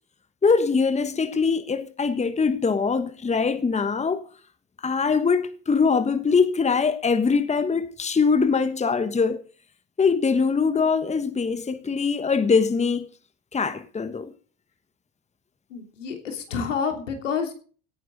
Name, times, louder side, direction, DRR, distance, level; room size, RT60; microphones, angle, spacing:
voice 1, 0.4-4.2 4.8-9.4 10.0-13.1 13.5-14.3, left 5 dB, 20° left, 1.3 m, -22 dB
voice 2, 15.7-17.5, left 6 dB, 80° left, 3.1 m, -28 dB
17.5 x 9.9 x 4.0 m
figure-of-eight pair, 60°, 37 cm